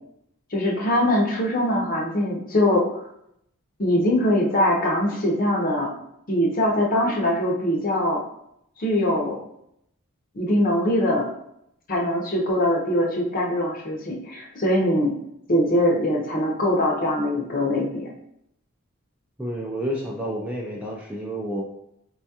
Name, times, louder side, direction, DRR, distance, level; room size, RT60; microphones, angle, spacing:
voice 1, 0.5-2.9 3.8-5.9 6.3-8.2 8.8-9.4 10.3-11.3 11.9-15.1 15.5-18.1, left 1 dB, 40° left, -1 dB, 0.6 m, -22 dB
voice 2, 19.4-21.6, equal, 5° right, -3 dB, 0.3 m, -30 dB
4.3 x 2.3 x 2.7 m, 0.76 s
head